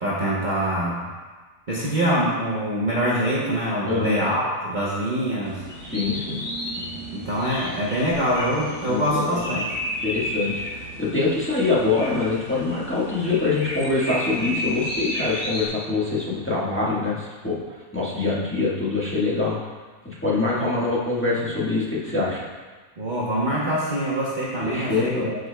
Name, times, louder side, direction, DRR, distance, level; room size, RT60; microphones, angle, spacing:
voice 1, 0.0-1.1 1.7-5.6 6.8-9.6 20.5-20.8 23.0-25.4, right 1 dB, 35° right, -7 dB, 1.0 m, -25 dB
voice 2, 3.8-4.2 5.8-6.4 8.9-9.6 10.0-19.6 20.0-22.4 24.6-25.3, left 3 dB, 10° left, -8 dB, 1.3 m, -24 dB
sound 1, 5.4-15.7, equal, 80° left, 2.6 m, -32 dB
13.0 x 5.2 x 2.2 m, 1.4 s
omnidirectional pair, 1.6 m